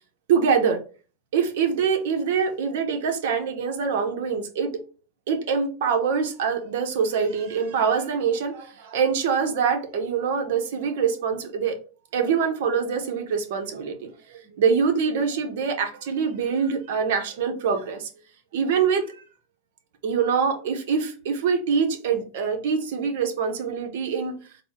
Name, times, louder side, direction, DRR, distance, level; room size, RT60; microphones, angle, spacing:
voice 1, 0.3-0.8 1.3-4.7 5.3-11.8 12.1-18.1 18.5-19.1 20.0-24.3, right 6 dB, 75° right, 5 dB, 1.0 m, -24 dB
4.1 x 2.2 x 4.5 m, 0.37 s
supercardioid pair, 145°, 0 cm